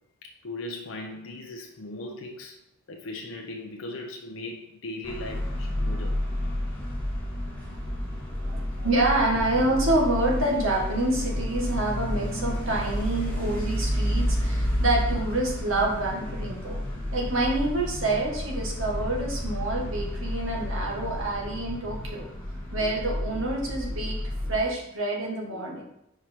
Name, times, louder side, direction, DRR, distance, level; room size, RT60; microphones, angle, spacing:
voice 1, 0.2-2.6 2.9-6.2, left 2 dB, 75° left, 1 dB, 0.7 m, -38 dB
sound 1, 5.0-24.6, equal, 10° left, 1.6 m, -30 dB
voice 2, 8.4-22.3 22.7-25.8, right 2 dB, 85° right, -2 dB, 1.7 m, -27 dB
4.9 x 4.8 x 4.4 m, 0.80 s
head